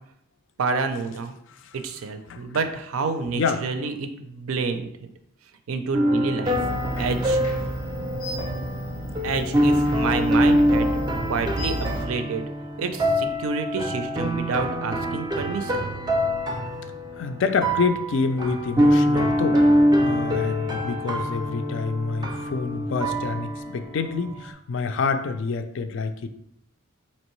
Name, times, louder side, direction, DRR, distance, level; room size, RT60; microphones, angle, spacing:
voice 1, 0.6-1.3 1.8-4.9 5.7-6.6 7.0-7.4 9.2-10.9 11.3-12.5 12.8-15.9, right 4 dB, 80° right, 8 dB, 0.4 m, -28 dB
sound 1, 5.9-24.5, equal, 20° right, 0.4 m, -24 dB
sound 2, 6.4-12.0, equal, 90° left, 0.7 m, -33 dB
voice 2, 17.2-19.6 20.0-26.3, left 4 dB, 60° left, 8 dB, 0.3 m, -27 dB
4.3 x 2.9 x 3.1 m, 0.75 s
head